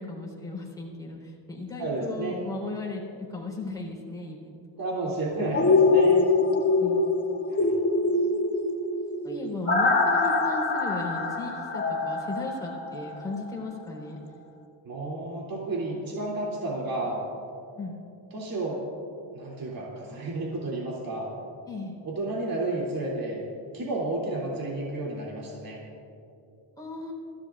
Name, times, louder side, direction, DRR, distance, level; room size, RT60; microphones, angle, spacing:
voice 1, 0.0-4.6 6.5-7.2 8.0-8.5 9.2-14.2 17.7-18.0 21.7-22.0 26.8-27.1, left 2 dB, 10° left, -3 dB, 4.1 m, -36 dB
voice 2, 1.8-2.4 4.8-6.2 7.5-7.7 14.8-17.2 18.3-18.8 19.3-21.3 22.0-23.4 23.7-25.8, right 2 dB, 45° right, -4 dB, 3.1 m, -31 dB
sound 1, 5.5-13.4 13.8-13.9, left 3 dB, 30° left, 2.3 m, -24 dB
24.5 x 15.5 x 2.5 m, 2.7 s
cardioid pair, 115°, 46 cm